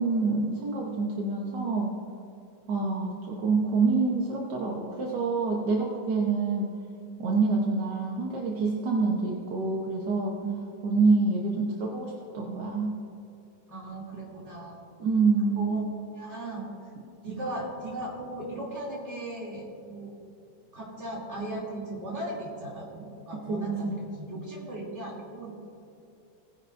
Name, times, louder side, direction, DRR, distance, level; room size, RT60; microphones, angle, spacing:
voice 1, 0.0-1.9 2.7-6.7 7.2-10.3 10.8-13.0 15.0-15.9 17.3-17.4 23.5-24.1, right 4 dB, 70° right, -2 dB, 1.7 m, -27 dB
voice 2, 13.7-14.9 15.5-15.8 16.1-16.6 17.2-20.1 20.7-25.5, right 2 dB, 35° right, -4 dB, 3.3 m, -37 dB
18.5 x 10.0 x 2.6 m, 2.7 s
omnidirectional pair, 2.0 m